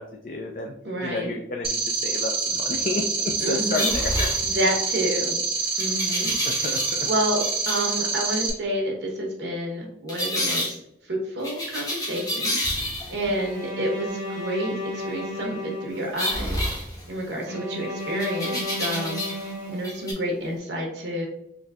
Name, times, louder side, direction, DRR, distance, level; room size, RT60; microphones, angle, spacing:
voice 1, 0.0-0.7 1.0-4.3 6.2-7.1, left 3 dB, 45° left, 2 dB, 0.3 m, -31 dB
voice 2, 0.8-1.4 3.4-3.9 4.4-5.4 5.8-6.6 6.9-10.8 11.0-12.6 13.1-16.6 17.1-19.2 19.7-21.3, right 1 dB, 85° right, 0 dB, 1.0 m, -29 dB
sound 1, 1.6-8.5, right 4 dB, 30° right, 0.5 m, -26 dB
sound 2, 3.7-4.9 5.8-7.1 7.4-7.9 10.1-10.7 11.4-13.3 16.2-17.4 18.2-19.5 19.8-20.1, left 1 dB, 20° left, 0.7 m, -29 dB
Bowed string instrument, 13.3-16.5 17.5-20.4, left 1 dB, 65° right, 0.9 m, -34 dB
3.9 x 2.7 x 2.4 m, 0.79 s
head